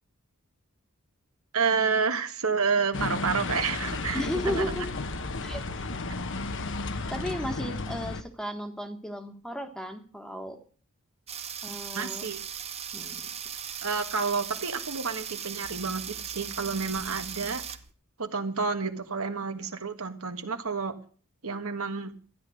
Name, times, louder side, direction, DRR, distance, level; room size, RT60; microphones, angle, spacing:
voice 1, 1.5-4.7 11.9-12.4 13.8-17.6 18.2-21.0 21.4-22.1, right 5 dB, 70° right, 7 dB, 1.6 m, -29 dB
sound 1, 2.9-8.2, left 3 dB, 60° left, 1.1 m, -33 dB
voice 2, 4.1-4.9 5.4-5.9 7.1-10.6 11.6-12.3 12.9-13.3, equal, 5° left, 6 dB, 1.4 m, -35 dB
sound 2, 11.3-17.9, right 8 dB, 30° right, 0.9 m, -38 dB
13.0 x 10.5 x 6.4 m, 0.42 s
head